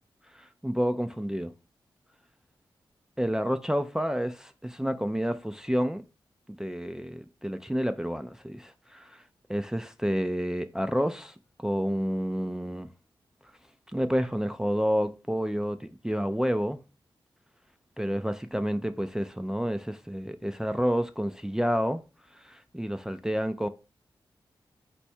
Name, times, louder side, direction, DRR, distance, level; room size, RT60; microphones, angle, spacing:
voice 1, 0.3-1.5 3.2-6.0 6.5-9.2 9.5-12.9 13.9-16.8 18.0-22.0 22.3-23.7, equal, 5° right, 0.4 m, -29 dB
4.3 x 2.2 x 4.3 m
cardioid pair, 45°, 9 cm